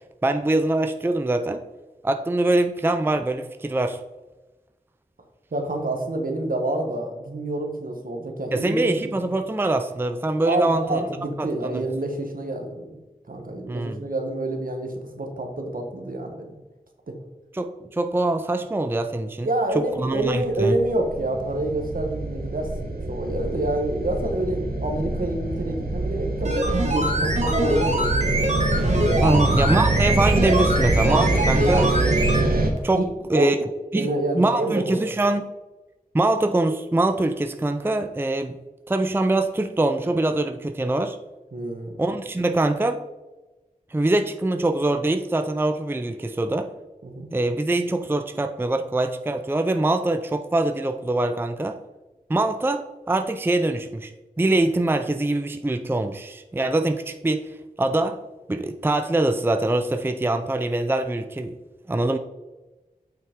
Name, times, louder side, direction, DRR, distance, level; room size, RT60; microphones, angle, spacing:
voice 1, 0.2-1.6 2.0-4.0 8.5-11.0 11.4-11.8 13.7-14.0 17.5-19.5 19.7-20.7 29.2-31.9 32.8-33.6 33.9-34.1 34.3-35.5 36.1-38.6 38.9-41.2 42.0-43.0 43.9-46.7 47.3-51.8 52.3-54.1 54.4-57.5 57.8-58.2 58.5-61.6 61.9-62.2, right 2 dB, 15° right, 7 dB, 0.4 m, -23 dB
voice 2, 5.5-9.3 10.4-13.0 13.3-16.5 19.4-28.6 29.2-29.4 32.9-33.0 33.3-33.6 33.9-35.1 41.5-42.0 47.0-47.3, right 1 dB, 70° right, 3 dB, 1.4 m, -28 dB
sound 1, 20.2-32.7, right 2 dB, 90° right, 1.1 m, -25 dB
sound 2, 26.4-32.5 32.8-32.9, right 1 dB, 50° right, 1.6 m, -24 dB
7.6 x 5.8 x 3.7 m, 1.1 s
wide cardioid pair, 55°, 15 cm